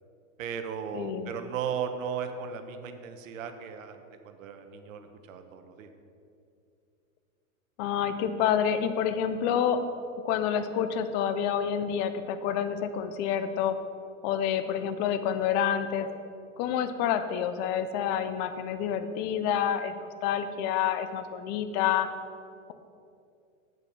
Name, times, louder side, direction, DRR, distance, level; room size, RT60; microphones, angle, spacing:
voice 1, 0.4-5.9, right 7 dB, 70° right, 7 dB, 1.1 m, -36 dB
voice 2, 0.9-1.3 7.8-9.8 10.2-13.8 14.2-16.1 16.6-22.1, left 8 dB, 25° left, 10 dB, 0.4 m, -28 dB
8.1 x 6.8 x 5.9 m, 2.5 s
supercardioid pair, 140°, 41 cm